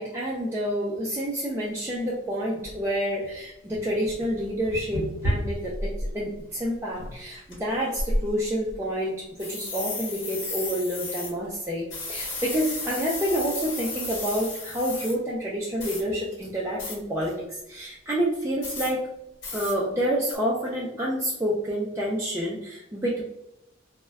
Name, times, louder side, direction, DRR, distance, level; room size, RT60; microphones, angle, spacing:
voice 1, 0.0-19.0 19.5-23.2, equal, 15° right, -5 dB, 0.3 m, -28 dB
sound 1, 1.9-2.0 2.6-2.8 3.3-3.4 3.7-6.1 6.5-6.6 7.0-7.5 8.0-8.8 9.4-11.3 11.9-15.1 15.8-16.0 16.8-17.0 18.6-18.9 19.4-19.7 20.3-20.4, left 1 dB, 65° left, 1.0 m, -32 dB
2.2 x 2.1 x 3.4 m, 0.86 s
head